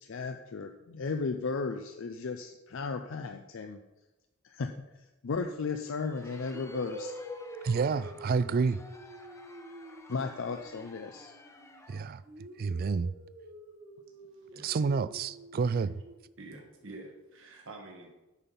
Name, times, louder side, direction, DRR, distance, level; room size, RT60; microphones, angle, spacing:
voice 1, 0.0-3.8 4.4-4.7 5.2-7.1 10.1-11.3, left 4 dB, 65° left, 0.5 m, -35 dB
sound 1, 5.4-5.7 6.5-11.8 12.2-16.2, equal, 85° right, 2.2 m, -47 dB
Crowd, 5.8-12.2, left 2 dB, 15° left, 0.7 m, -54 dB
voice 2, 7.6-8.8 11.9-12.2 12.6-13.1 14.6-15.9, right 5 dB, 45° right, 0.3 m, -29 dB
voice 3, 16.4-18.1, right 2 dB, 65° right, 1.4 m, -48 dB
8.2 x 5.8 x 5.2 m
head